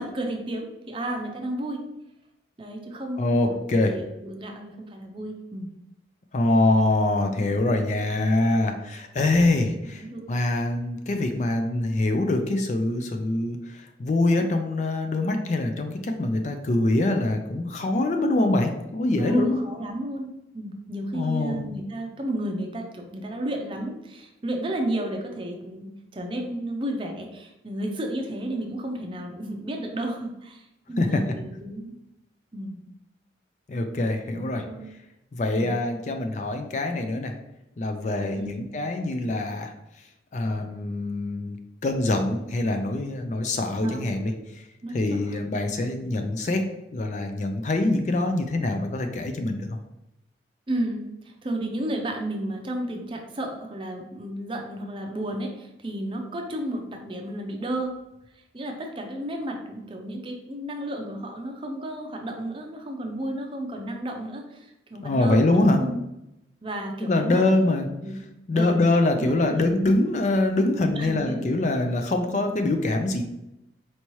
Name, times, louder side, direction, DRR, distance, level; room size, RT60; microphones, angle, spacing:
voice 1, 0.0-1.8 2.6-5.7 10.0-10.3 19.2-31.9 32.5-32.9 34.3-34.9 35.6-35.7 38.3-38.6 43.8-44.1 44.8-45.0 45.2-45.4 50.7-57.9 58.5-65.4 65.8-66.0 66.6-67.4 68.0-68.2 68.5-68.8 69.2-69.6 71.0-71.4, right 1 dB, 30° right, 2 dB, 0.5 m, -32 dB
voice 2, 3.2-3.9 6.3-19.6 21.1-21.7 31.0-31.2 33.7-34.6 35.3-37.3 37.8-40.1 40.3-41.6 41.8-44.7 44.9-46.7 46.9-49.8 65.0-65.8 67.0-67.9 68.5-73.2, left 2 dB, 40° left, 5 dB, 0.4 m, -24 dB
4.5 x 2.8 x 3.0 m, 0.88 s
head